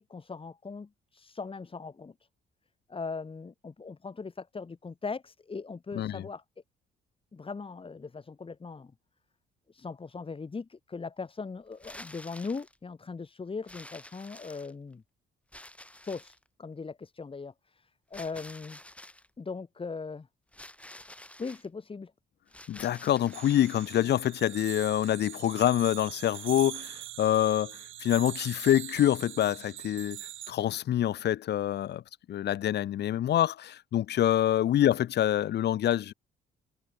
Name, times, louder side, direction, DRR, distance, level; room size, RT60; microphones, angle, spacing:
voice 1, 0.0-2.1 2.9-6.4 7.3-8.9 9.7-15.0 16.0-18.8 19.4-20.3 21.4-22.1, left 4 dB, 25° left, 1.7 m, -39 dB
voice 2, 5.9-6.2 22.7-30.2 30.5-32.0 32.3-36.1, left 11 dB, 55° left, 0.6 m, -26 dB
sound 1, 11.7-12.8 13.7-14.9 15.5-16.5 18.1-19.3 20.5-21.7 22.5-24.0, left 1 dB, 5° left, 1.8 m, -49 dB
sound 2, 23.3-30.5, right 13 dB, 80° right, 1.7 m, -42 dB
cardioid pair, 90°, 20 cm